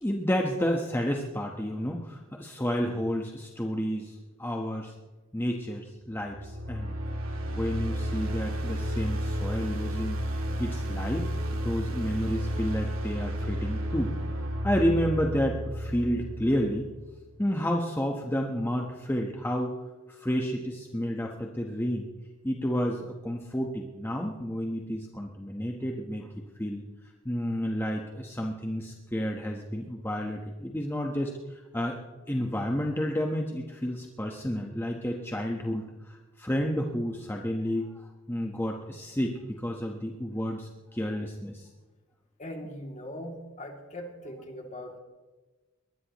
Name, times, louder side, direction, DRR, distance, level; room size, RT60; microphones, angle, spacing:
voice 1, 0.0-4.9 5.3-6.9 7.5-10.2 10.6-16.9 17.4-19.7 20.1-22.1 22.4-26.3 26.6-26.8 27.2-32.0 32.3-41.7, equal, 10° left, 1 dB, 1.2 m, -31 dB
sound 1, 6.3-17.3, equal, 90° right, 2.2 m, -32 dB
voice 2, 42.4-45.0, equal, 35° left, 2 dB, 2.7 m, -40 dB
23.0 x 20.0 x 3.1 m, 1.2 s
head